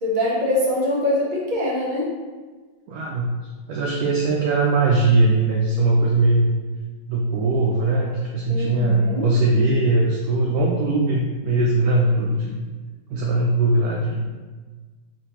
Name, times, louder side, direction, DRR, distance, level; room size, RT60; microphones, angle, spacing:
voice 1, 0.0-2.1 8.5-9.3, left 1 dB, 30° right, -5 dB, 0.9 m, -23 dB
voice 2, 2.9-3.4 3.7-6.5 7.1-12.6 13.1-14.2, right 2 dB, 75° right, -2 dB, 0.8 m, -20 dB
5.0 x 3.2 x 2.9 m, 1.3 s
omnidirectional pair, 2.0 m